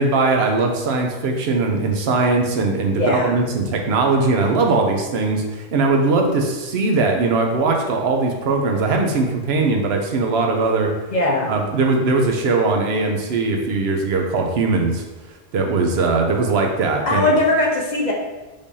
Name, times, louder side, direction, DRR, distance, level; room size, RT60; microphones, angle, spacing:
voice 1, 0.0-10.9 11.5-15.0 15.5-17.4, right 3 dB, 65° right, 2 dB, 0.9 m, -20 dB
voice 2, 3.0-3.4 11.1-11.5 17.1-18.1, left 2 dB, 45° left, -2 dB, 0.7 m, -19 dB
5.1 x 3.4 x 2.7 m, 1.2 s
omnidirectional pair, 1.2 m